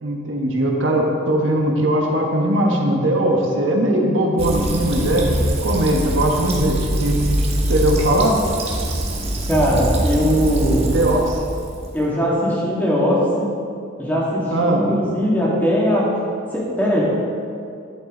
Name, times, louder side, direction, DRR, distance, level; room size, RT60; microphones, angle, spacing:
voice 1, 0.0-5.2 5.6-7.2 7.7-8.4 10.9-11.4 14.5-14.8, right 1 dB, 80° right, 0 dB, 1.4 m, -19 dB
Fill (with liquid), 4.4-12.1, right 1 dB, 35° right, 1.3 m, -23 dB
voice 2, 9.5-10.9 11.9-13.5 14.0-16.1 16.5-17.0, equal, 10° left, -6 dB, 2.4 m, -20 dB
11.0 x 8.6 x 4.0 m, 2.4 s
head